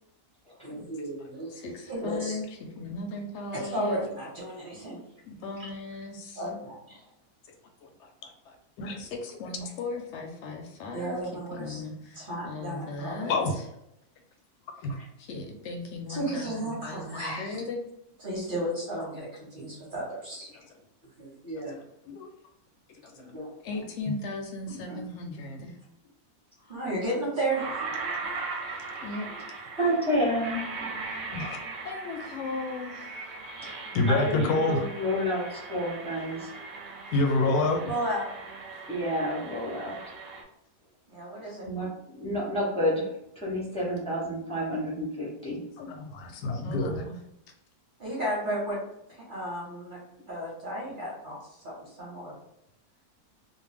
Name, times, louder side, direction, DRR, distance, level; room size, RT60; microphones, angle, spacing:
voice 1, 0.6-2.4 3.7-5.0 5.6-5.7 6.4-6.5 6.9-7.0 10.9-11.9 12.1-13.3 14.9-15.1 16.1-17.6 18.2-20.5 21.2-21.8 23.1-23.5 24.9-25.0 26.7-27.8 37.9-38.3 41.1-41.7 48.0-48.8 49.1-50.0 50.3-51.4 51.6-52.3, right 1 dB, 40° right, -4 dB, 0.9 m, -33 dB
voice 2, 1.5-4.0 5.3-6.2 7.4-7.5 7.8-8.6 9.0-13.3 15.2-17.8 20.5-20.8 22.9-23.3 23.6-25.8 29.0-29.5 31.8-33.5 46.6-47.2, left 3 dB, 65° left, 3 dB, 0.7 m, -38 dB
sound 1, 27.5-40.4, right 4 dB, 65° right, 0.9 m, -39 dB
voice 3, 29.8-30.7 34.1-36.6 38.9-40.0 41.6-43.1 43.4-45.6, equal, 10° left, -6 dB, 0.3 m, -29 dB
voice 4, 31.3-31.6 33.9-34.8 37.1-37.8 45.8-47.0, left 2 dB, 85° left, 4 dB, 1.1 m, -26 dB
2.5 x 2.1 x 3.3 m, 0.80 s
omnidirectional pair, 1.6 m